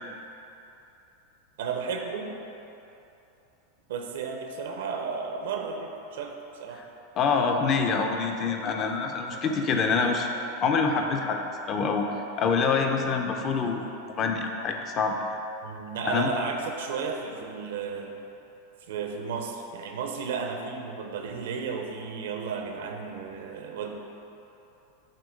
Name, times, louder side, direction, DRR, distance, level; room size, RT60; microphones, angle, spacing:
voice 1, 1.6-2.3 3.9-6.8 9.3-10.1 15.6-18.2 18.9-23.9, right 5 dB, 80° right, 3 dB, 0.7 m, -34 dB
voice 2, 7.2-10.3 10.6-11.4 11.7-12.1 12.4-13.9 14.2-15.2 16.0-16.3, left 5 dB, 30° left, 3 dB, 0.5 m, -26 dB
7.3 x 3.0 x 5.2 m, 2.9 s
supercardioid pair, 145°, 0 cm